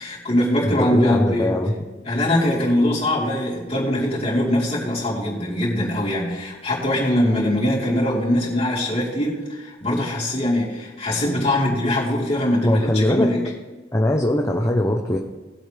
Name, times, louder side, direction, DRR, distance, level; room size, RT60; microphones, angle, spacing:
voice 1, 0.0-1.5 2.0-13.4, left 1 dB, 35° left, -6 dB, 3.9 m, -22 dB
voice 2, 0.6-1.7 12.6-13.3 13.9-15.2, left 1 dB, 15° left, 1 dB, 0.8 m, -20 dB
20.0 x 8.0 x 3.4 m, 1.2 s
head